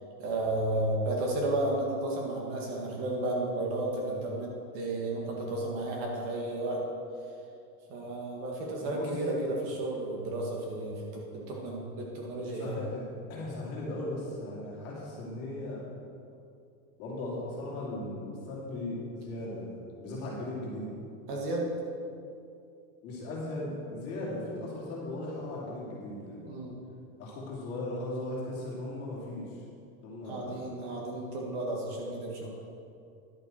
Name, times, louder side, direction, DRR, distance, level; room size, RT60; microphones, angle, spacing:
voice 1, 0.2-6.8 7.9-12.8 21.3-21.7 26.5-26.8 30.3-32.5, right 2 dB, 40° right, -1 dB, 1.7 m, -33 dB
voice 2, 8.8-9.1 12.5-13.0 13.3-15.8 17.0-20.9 23.0-26.5 27.2-29.6 30.0-30.6 32.4-32.5, left 1 dB, 35° left, -5 dB, 2.7 m, -37 dB
11.0 x 8.8 x 4.4 m, 2.5 s
supercardioid pair, 165°, 44 cm